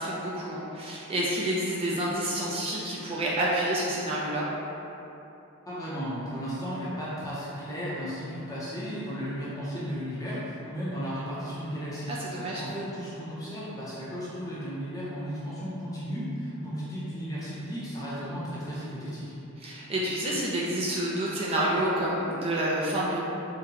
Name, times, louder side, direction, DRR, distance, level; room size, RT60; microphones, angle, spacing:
voice 1, 0.0-4.5 12.1-12.6 19.6-23.2, right 1 dB, 25° right, -6 dB, 0.4 m, -28 dB
voice 2, 5.7-12.1 12.4-19.3, equal, 15° left, -9 dB, 0.6 m, -35 dB
3.7 x 2.2 x 2.8 m, 2.9 s
head